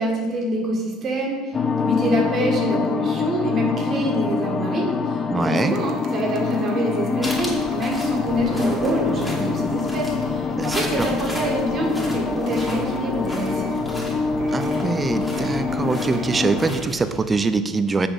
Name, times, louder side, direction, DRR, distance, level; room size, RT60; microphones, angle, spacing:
voice 1, 0.0-13.7, equal, 40° right, 0 dB, 1.9 m, -26 dB
sound 1, 1.5-16.7, left 4 dB, 30° left, 0.6 m, -25 dB
voice 2, 5.3-5.7 10.5-11.1 14.5-18.1, right 4 dB, 20° right, 11 dB, 0.6 m, -23 dB
sound 2, 5.7-10.4 10.9-11.0 11.4-11.5 11.7-16.8, right 4 dB, 55° right, 1.1 m, -38 dB
sound 3, 7.2-17.2, equal, 10° left, 2.6 m, -33 dB
7.0 x 5.0 x 7.1 m, 1.5 s
supercardioid pair, 105°, 0 cm